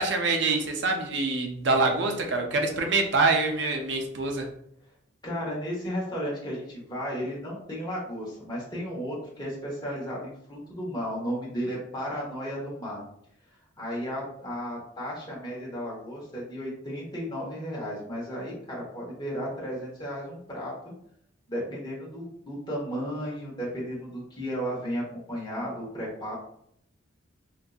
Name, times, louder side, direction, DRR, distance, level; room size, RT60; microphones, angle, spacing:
voice 1, 0.0-4.5, right 3 dB, 65° right, 3 dB, 0.5 m, -25 dB
voice 2, 5.2-13.0 13.8-20.9 21.5-26.3, equal, 20° left, -5 dB, 1.0 m, -34 dB
3.7 x 2.7 x 2.3 m, 0.72 s
head